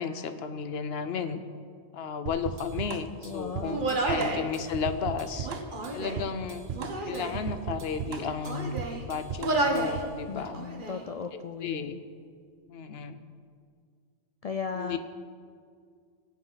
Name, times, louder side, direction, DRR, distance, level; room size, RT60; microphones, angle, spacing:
voice 1, 0.0-1.4 1.9-5.5 5.9-6.7 7.0-10.6 11.3-12.0 12.7-13.2 14.7-15.0, left 6 dB, 75° left, 10 dB, 1.0 m, -34 dB
sound 1, 2.3-10.2, right 6 dB, 75° right, 0.9 m, -37 dB
voice 2, 3.2-4.0 10.3-12.0 14.4-15.0, left 6 dB, 55° left, 6 dB, 0.4 m, -36 dB
Human voice, 3.6-4.5 5.4-6.3 6.7-7.4 8.1-9.0 9.4-10.0 10.4-11.0, right 2 dB, 50° right, 1.4 m, -30 dB
19.0 x 8.4 x 4.0 m, 2.2 s
omnidirectional pair, 1.1 m